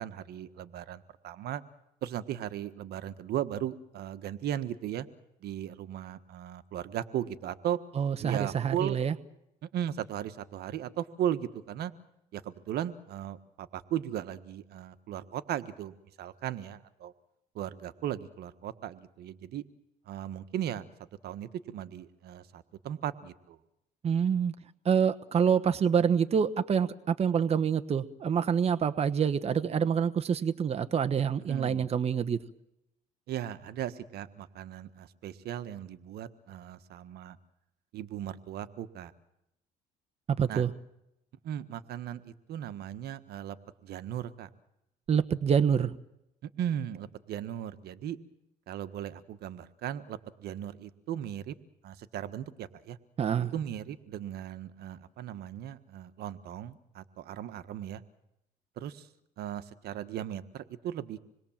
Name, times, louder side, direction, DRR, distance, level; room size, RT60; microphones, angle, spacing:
voice 1, 0.0-1.6 2.0-5.1 5.4-7.8 8.2-9.0 9.6-11.9 12.3-17.1 17.5-19.6 20.1-20.9 21.2-23.6 31.5-31.9 33.3-37.4 37.9-39.1 40.5-40.7 41.4-43.6 43.8-44.5 46.4-48.2 48.7-51.5 51.8-53.0 53.5-58.0 58.8-59.1 59.4-61.2, right 10 dB, 70° right, 12 dB, 1.5 m, -37 dB
voice 2, 8.0-9.1 24.0-24.5 24.8-32.4 40.3-40.7 45.1-45.9 53.2-53.5, right 7 dB, 40° right, 11 dB, 1.2 m, -26 dB
27.0 x 21.5 x 7.4 m, 0.83 s
cardioid pair, 110°, 17 cm